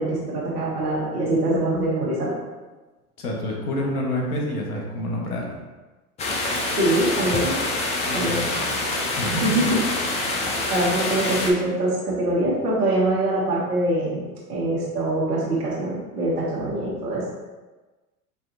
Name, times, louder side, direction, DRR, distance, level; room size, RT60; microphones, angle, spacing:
voice 1, 0.0-2.3 6.7-7.5 8.1-8.5 9.2-9.8 10.7-14.2 14.5-17.2, right 1 dB, 80° right, -6 dB, 1.5 m, -23 dB
voice 2, 3.2-5.6 8.0-8.9 9.2-9.7, left 1 dB, 80° left, -1 dB, 1.2 m, -28 dB
sound 1, 6.2-11.5, left 2 dB, 15° left, 0.3 m, -26 dB
5.6 x 2.7 x 2.6 m, 1.2 s
hypercardioid pair, 90°, 45 cm